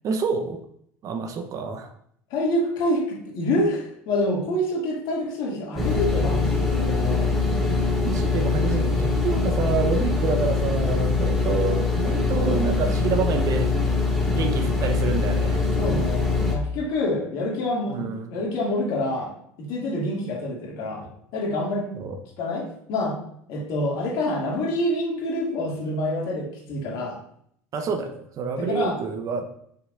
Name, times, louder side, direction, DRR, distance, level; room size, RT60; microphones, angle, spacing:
voice 1, 0.0-0.6 1.0-1.9 8.0-13.7 14.3-15.7 17.9-18.3 21.9-22.2 27.7-29.4, right 5 dB, 45° right, 6 dB, 1.0 m, -27 dB
voice 2, 2.3-7.3 14.3-14.7 15.8-21.9 22.4-23.2 23.5-27.2 28.6-29.0, left 1 dB, 60° left, -2 dB, 2.5 m, -27 dB
sound 1, 5.8-16.5, left 3 dB, ahead, 2.7 m, -23 dB
6.3 x 6.1 x 2.6 m, 0.67 s
hypercardioid pair, 75°, 8 cm